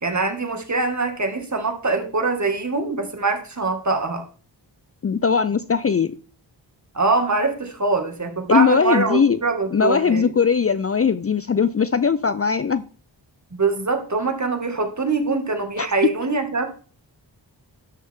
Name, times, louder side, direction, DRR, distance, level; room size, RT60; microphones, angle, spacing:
voice 1, 0.0-4.2 6.9-10.3 13.5-16.7, right 3 dB, 40° right, 4 dB, 2.1 m, -23 dB
voice 2, 5.0-6.1 8.5-9.4 9.7-12.8 15.8-15.9, left 6 dB, 35° left, 14 dB, 0.5 m, -19 dB
12.5 x 6.1 x 3.7 m, 0.40 s
cardioid pair, 55°, 44 cm